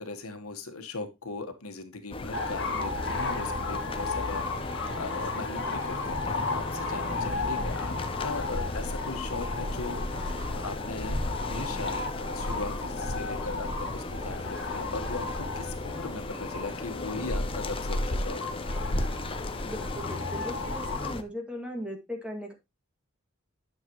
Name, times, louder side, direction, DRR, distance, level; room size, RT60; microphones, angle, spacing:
voice 1, 0.0-7.9 8.2-18.6, left 3 dB, 85° left, 7 dB, 1.4 m, -39 dB
sound 1, 2.1-21.2, left 2 dB, 25° left, 0.7 m, -36 dB
sound 2, 2.3-21.1, left 2 dB, 55° left, 1.6 m, -34 dB
voice 2, 19.6-22.5, equal, 5° right, 2 dB, 1.9 m, -38 dB
9.7 x 6.9 x 3.0 m, 0.22 s
head